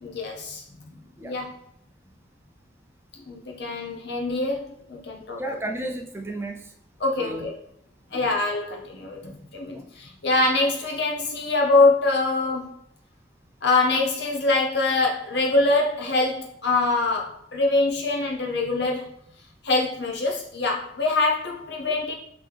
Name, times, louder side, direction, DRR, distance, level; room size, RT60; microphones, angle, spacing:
voice 1, 0.0-1.6 3.3-5.6 7.0-7.5 8.1-12.8 13.6-19.1 19.6-22.2, left 3 dB, 60° left, 0 dB, 0.8 m, -24 dB
voice 2, 5.4-6.7 7.2-7.5 8.1-8.3 9.7-9.8, right 1 dB, 10° right, 2 dB, 0.3 m, -33 dB
3.6 x 3.0 x 3.4 m, 0.65 s
head